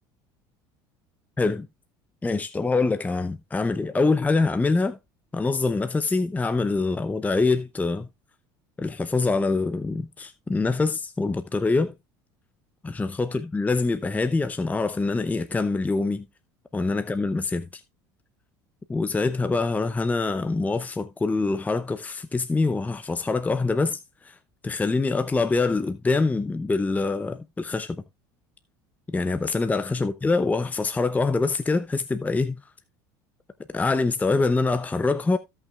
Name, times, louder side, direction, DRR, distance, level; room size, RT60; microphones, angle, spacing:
voice 1, 2.2-5.0 5.3-8.1 8.8-11.9 12.8-16.2 16.7-17.8 18.9-24.4 24.6-28.0 29.1-32.6 33.7-35.4, left 3 dB, 15° left, 0.7 m, -25 dB
16.5 x 5.7 x 2.4 m
supercardioid pair, 85°, 11 cm